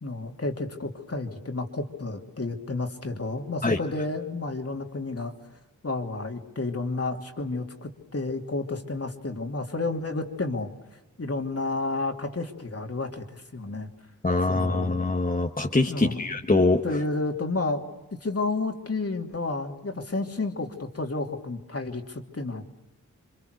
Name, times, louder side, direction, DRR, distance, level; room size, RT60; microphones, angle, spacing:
voice 1, 0.0-5.3 5.8-10.7 11.2-13.9 14.5-15.0 15.9-16.4 16.8-17.9 18.2-22.7, left 3 dB, 50° left, 3 dB, 2.9 m, -31 dB
voice 2, 14.2-16.8, left 2 dB, 30° left, 2 dB, 1.5 m, -23 dB
28.0 x 25.5 x 6.7 m, 1.0 s
wide cardioid pair, 65°, 31 cm